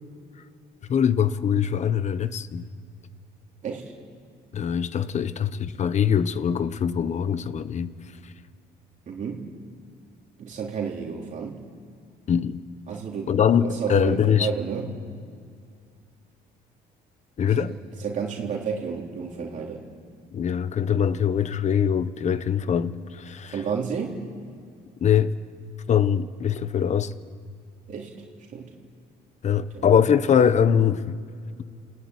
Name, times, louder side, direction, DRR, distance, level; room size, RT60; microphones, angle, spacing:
voice 1, 0.9-2.7 4.5-7.9 12.3-12.6 13.3-14.5 17.4-17.7 20.3-23.5 25.0-25.3 25.9-27.1 29.4-31.2, left 8 dB, 45° left, 1.1 m, -22 dB
voice 2, 9.1-9.4 10.4-11.6 12.9-13.3 13.6-14.9 17.6-19.8 23.5-24.2 27.9-28.1 28.5-28.7 29.7-29.9, right 6 dB, 45° right, 3.4 m, -31 dB
29.0 x 17.0 x 9.7 m
cardioid pair, 110°, 17 cm